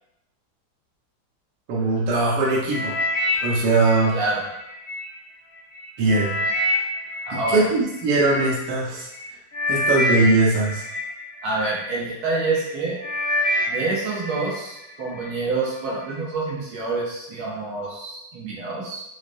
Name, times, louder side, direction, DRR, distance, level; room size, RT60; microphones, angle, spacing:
voice 1, 1.7-2.9 3.4-4.1 6.0-6.4 7.3-9.1 9.7-10.8, right 2 dB, 60° right, -5 dB, 1.3 m, -20 dB
sound 1, 2.7-5.0 5.6-8.4 9.1-9.2 9.5-11.9 12.4-12.7 13.0-14.5 14.9-15.3 15.9-16.0, left 1 dB, 55° left, 1.1 m, -26 dB
voice 2, 7.3-7.7 11.4-13.0 13.7-19.0, right 3 dB, 85° right, -5 dB, 1.8 m, -27 dB
4.8 x 2.1 x 2.6 m, 0.86 s
omnidirectional pair, 2.3 m